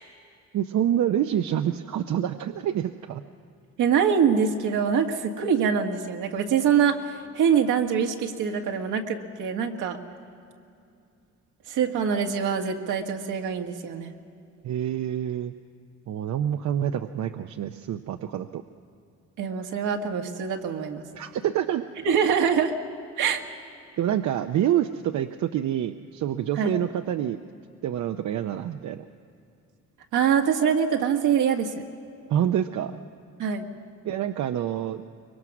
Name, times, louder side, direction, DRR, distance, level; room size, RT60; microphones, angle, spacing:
voice 1, 0.5-3.2 14.6-15.5 16.1-18.6 21.1-21.9 24.0-27.4 27.8-29.0 32.3-33.0 34.0-35.0, right 10 dB, 70° right, 7 dB, 0.7 m, -27 dB
voice 2, 3.8-10.0 11.7-14.1 19.4-21.0 22.0-22.7 23.2-23.4 26.6-26.8 30.1-31.7 33.4-33.7, right 7 dB, 85° right, 3 dB, 1.7 m, -24 dB
24.5 x 22.5 x 6.1 m, 2.5 s
cardioid pair, 90°, 30 cm